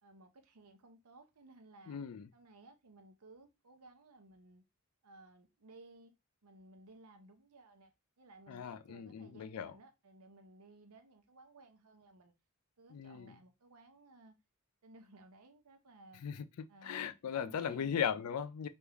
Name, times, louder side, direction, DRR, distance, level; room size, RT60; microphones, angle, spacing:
voice 1, 0.0-2.0 2.3-4.6 5.0-6.1 6.4-7.9 8.2-12.3 12.8-14.3 14.8-16.2 16.7-18.0, right 2 dB, 90° right, 0.7 m, -59 dB
voice 2, 1.9-2.3 8.5-9.7 12.9-13.4 16.2-16.4 16.8-18.7, left 8 dB, 85° left, 0.4 m, -38 dB
3.5 x 2.6 x 4.5 m
head